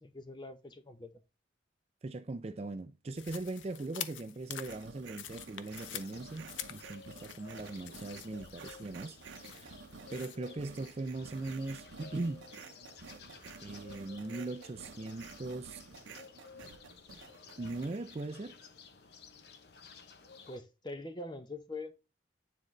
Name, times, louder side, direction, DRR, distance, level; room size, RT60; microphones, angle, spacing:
voice 1, 0.0-1.1 20.5-21.9, left 2 dB, 25° left, 0.7 m, -43 dB
voice 2, 2.0-9.8 10.1-12.5 13.6-15.8 17.6-18.6, right 2 dB, 35° right, 0.4 m, -40 dB
sound 1, 3.2-10.4, left 10 dB, 85° left, 0.6 m, -47 dB
sound 2, 4.7-18.3, right 5 dB, 85° right, 0.7 m, -52 dB
sound 3, 5.1-20.6, left 5 dB, 60° left, 0.8 m, -54 dB
9.4 x 3.8 x 3.2 m
head